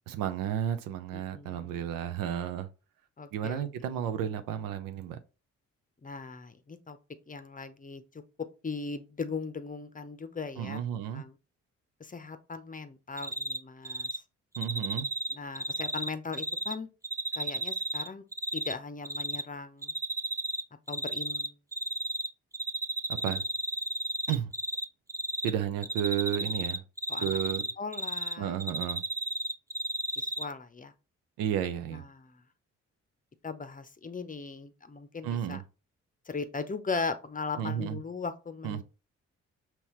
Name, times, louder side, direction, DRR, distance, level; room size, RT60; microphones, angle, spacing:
voice 1, 0.1-2.7 3.3-5.2 10.6-11.2 14.6-15.1 23.1-23.4 24.3-24.5 25.4-26.8 27.2-27.6 28.4-29.0 31.4-32.0 35.2-35.6 37.6-38.0 38.6-38.8, right 10 dB, 75° right, 0.6 m, -32 dB
voice 2, 1.1-1.8 3.2-3.6 6.0-7.0 7.3-8.0 8.6-10.8 11.1-11.4 12.0-14.2 15.3-16.9 17.4-18.2 18.5-19.9 20.9-21.6 27.1-27.4 27.8-28.6 30.2-30.9 31.9-32.4 33.4-35.6 36.3-38.8, left 4 dB, 25° left, 0.7 m, -38 dB
Cricket, 13.2-13.6 13.8-14.2 14.5-16.7 17.0-18.7 19.0-19.4 19.8-20.6 20.9-22.3 22.5-24.8 25.1-25.5 25.8-28.3 28.6-30.4, right 1 dB, 10° right, 0.4 m, -32 dB
5.5 x 2.9 x 3.0 m
hypercardioid pair, 45°, 34 cm